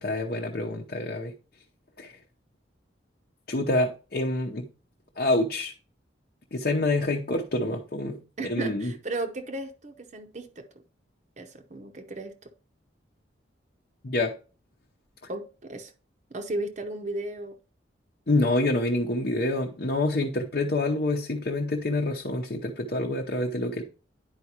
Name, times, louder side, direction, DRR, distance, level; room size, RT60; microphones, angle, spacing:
voice 1, 0.0-1.3 2.0-2.2 3.5-4.7 5.2-5.7 6.5-8.9 14.0-14.3 15.2-15.3 18.3-23.8, left 2 dB, 50° left, 0.8 m, -27 dB
voice 2, 8.4-10.7 11.4-12.5 15.3-15.9 16.3-17.6, right 2 dB, 40° right, 0.7 m, -35 dB
10.5 x 4.7 x 2.9 m
head